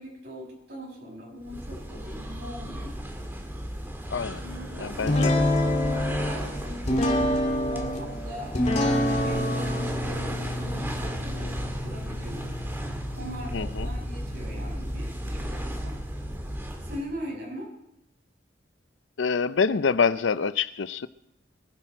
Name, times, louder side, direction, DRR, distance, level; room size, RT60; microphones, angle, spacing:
voice 1, 0.0-3.0 4.4-5.3 5.8-8.6 9.0-10.3 10.6-12.6 13.2-16.0 16.8-17.7, equal, 65° right, 6.0 m, -40 dB
sound 1, 1.4-17.2, equal, 10° right, 2.0 m, -35 dB
voice 2, 4.1-4.4 4.8-5.4 13.5-13.9 19.2-21.1, left 5 dB, 80° left, 0.6 m, -26 dB
sound 2, 5.1-16.5, left 1 dB, 35° left, 2.3 m, -28 dB
23.0 x 11.0 x 4.5 m
head